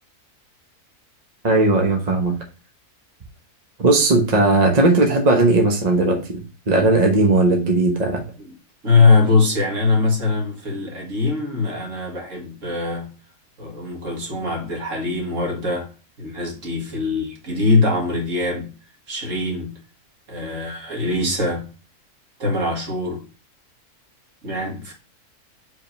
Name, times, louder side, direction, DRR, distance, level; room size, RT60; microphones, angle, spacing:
voice 1, 1.4-2.3 3.8-8.2, right 2 dB, 30° right, 1.0 m, -17 dB
voice 2, 8.8-13.1 13.6-15.9 16.2-18.7 19.1-19.8 20.3-21.7 22.4-23.3 24.4-24.9, left 3 dB, 55° right, 2.2 m, -22 dB
5.0 x 3.5 x 5.3 m
omnidirectional pair, 1.6 m